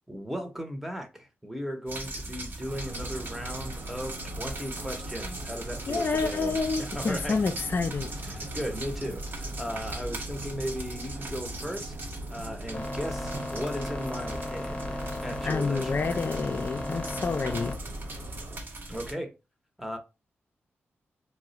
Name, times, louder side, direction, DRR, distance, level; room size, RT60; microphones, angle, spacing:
voice 1, 0.1-7.4 8.2-16.3 18.9-19.3 19.8-20.0, equal, 5° right, 0.7 m, -37 dB
sound 1, 1.9-19.1, right 2 dB, 50° right, 0.8 m, -40 dB
sound 2, 2.7-18.6, right 1 dB, 85° right, 0.6 m, -40 dB
voice 2, 5.9-8.1 15.4-17.8, left 4 dB, 50° left, 0.4 m, -28 dB
sound 3, 12.7-17.7, left 1 dB, 25° left, 0.8 m, -35 dB
2.3 x 2.0 x 3.8 m
cardioid pair, 60°, 5 cm